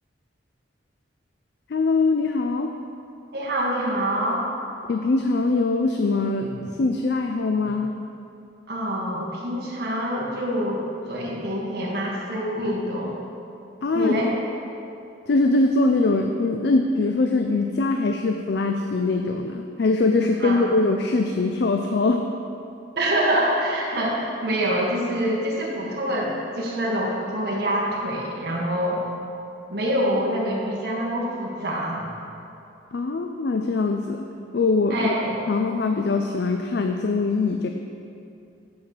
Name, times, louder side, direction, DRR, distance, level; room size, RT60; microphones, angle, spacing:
voice 1, 1.7-2.7 4.9-6.5 6.8-7.9 13.8-14.1 15.3-22.3 32.9-34.3 34.5-35.1 35.5-37.7, left 3 dB, 60° left, 4 dB, 0.4 m, -22 dB
voice 2, 3.3-4.4 6.4-6.7 7.6-7.7 8.7-13.2 13.9-14.3 20.4-20.7 22.9-29.0 29.7-32.1 34.9-35.3, equal, 55° right, -4 dB, 1.7 m, -26 dB
9.3 x 4.4 x 6.6 m, 2.6 s
head